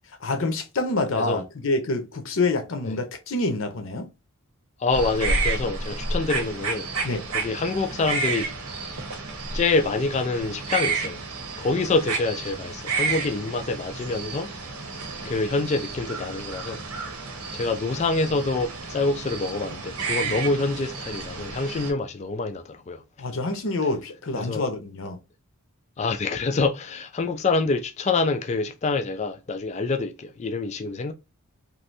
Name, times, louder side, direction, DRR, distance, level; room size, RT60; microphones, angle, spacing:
voice 1, 0.2-4.1 7.0-7.2 20.2-20.3 23.2-25.2, left 2 dB, 60° left, 0.7 m, -27 dB
voice 2, 4.8-6.9 7.3-8.5 9.5-11.2 11.6-14.5 15.2-16.8 17.5-23.0 24.3-24.6 26.0-31.1, left 3 dB, 30° left, 0.3 m, -26 dB
sound 1, 4.9-21.9, right 4 dB, 85° right, 0.9 m, -31 dB
3.1 x 2.6 x 2.6 m
head